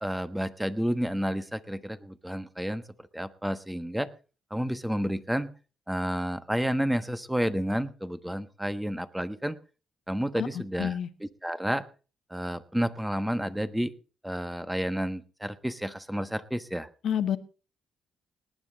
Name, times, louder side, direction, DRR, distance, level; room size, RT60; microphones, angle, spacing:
voice 1, 0.0-2.8 3.1-4.1 4.5-5.5 5.9-9.6 10.1-11.8 12.3-13.9 14.2-16.9, equal, 5° right, 11 dB, 1.2 m, -30 dB
voice 2, 10.4-11.1 17.0-17.4, left 9 dB, 65° left, 11 dB, 1.3 m, -29 dB
19.0 x 9.8 x 4.0 m, 0.35 s
cardioid pair, 90°, 0 cm